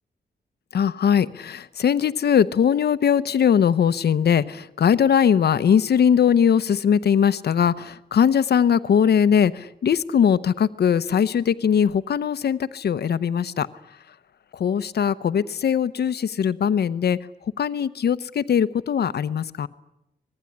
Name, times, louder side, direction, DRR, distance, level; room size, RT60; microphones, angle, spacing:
voice 1, 0.7-13.7 14.5-17.2 17.6-19.7, left 8 dB, 80° left, 14 dB, 0.9 m, -20 dB
25.0 x 20.5 x 9.9 m, 0.88 s
wide cardioid pair, 140°, 17 cm